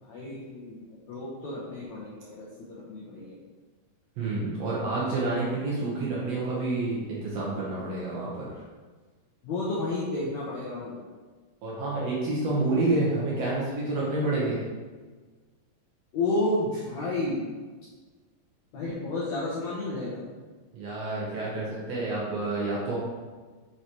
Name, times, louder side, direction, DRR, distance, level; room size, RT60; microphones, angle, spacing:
voice 1, 0.0-3.4 9.4-11.0 16.1-17.4 18.7-20.2, left 2 dB, 75° left, -7 dB, 1.6 m, -31 dB
voice 2, 4.2-8.5 11.6-14.6 20.7-23.0, right 2 dB, 85° right, -6 dB, 1.4 m, -28 dB
7.0 x 4.7 x 3.0 m, 1.4 s
omnidirectional pair, 4.5 m